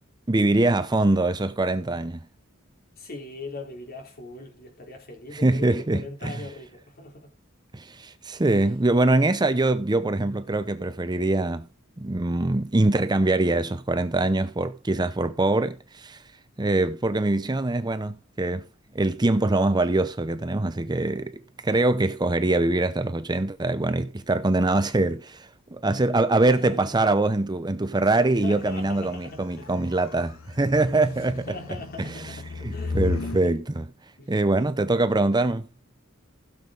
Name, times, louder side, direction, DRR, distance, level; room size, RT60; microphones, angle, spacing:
voice 1, 0.3-2.2 5.3-6.4 7.7-11.7 12.0-16.2 16.6-18.7 18.9-31.5 32.0-32.2 32.6-33.9 34.3-35.7, right 2 dB, 20° right, 0.7 m, -23 dB
voice 2, 3.0-7.3 8.5-8.6 26.5-27.1 28.0-29.7 30.9-33.5 34.2-34.3, left 2 dB, 45° left, 4.0 m, -41 dB
sound 1, 28.6-33.4, left 3 dB, 75° left, 1.1 m, -35 dB
16.0 x 7.0 x 3.9 m
head